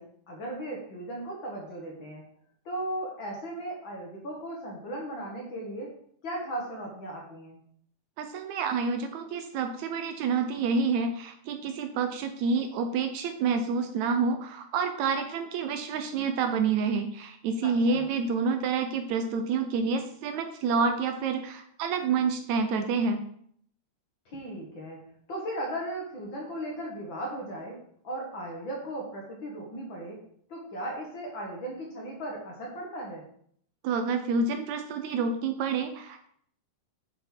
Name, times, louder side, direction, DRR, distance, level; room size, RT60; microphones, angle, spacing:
voice 1, 0.0-2.3 2.7-5.9 6.2-7.6 17.6-18.1 24.3-25.0 25.3-27.8 28.0-30.2 30.5-33.2, right 1 dB, 50° left, -1 dB, 1.7 m, -37 dB
voice 2, 8.2-23.2 33.8-36.3, right 5 dB, 75° right, 7 dB, 1.8 m, -28 dB
7.7 x 5.4 x 4.5 m, 0.64 s
omnidirectional pair, 3.7 m